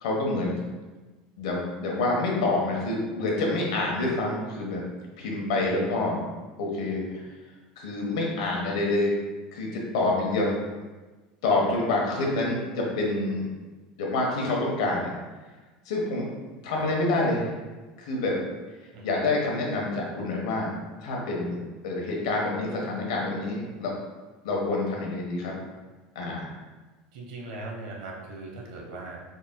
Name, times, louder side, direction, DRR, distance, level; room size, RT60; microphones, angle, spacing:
voice 1, 0.0-0.5 1.4-4.8 5.2-6.2 6.6-7.2 7.8-9.1 9.5-10.6 11.4-13.5 14.0-15.1 15.9-16.3 16.6-17.5 18.0-18.4 19.0-20.7 21.0-21.6 21.8-23.9 24.4-25.5 26.1-26.5, left 2 dB, 90° left, -2 dB, 1.0 m, -27 dB
voice 2, 5.6-5.9 12.2-12.5 16.7-16.9 18.9-19.2 27.1-29.2, right 2 dB, 75° right, -1 dB, 1.0 m, -40 dB
4.2 x 3.9 x 2.2 m, 1.3 s
supercardioid pair, 145°, 3 cm